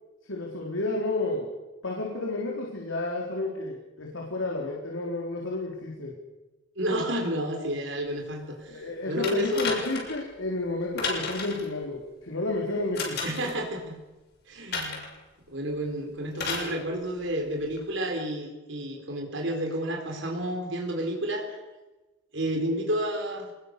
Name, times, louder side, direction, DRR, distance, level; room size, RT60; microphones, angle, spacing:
voice 1, 0.3-1.5 1.8-6.2 8.7-13.2, left 2 dB, 75° left, -1 dB, 3.9 m, -31 dB
voice 2, 6.8-9.7 13.2-14.0 14.5-15.0 15.5-21.6 22.3-23.5, equal, 65° right, 1 dB, 4.3 m, -30 dB
sound 1, 9.2-10.2 11.0-11.7 12.9-13.5 14.7-15.1 16.3-16.7 17.8-17.9, left 4 dB, 55° left, 6.9 m, -32 dB
26.0 x 20.5 x 6.8 m, 1.1 s
head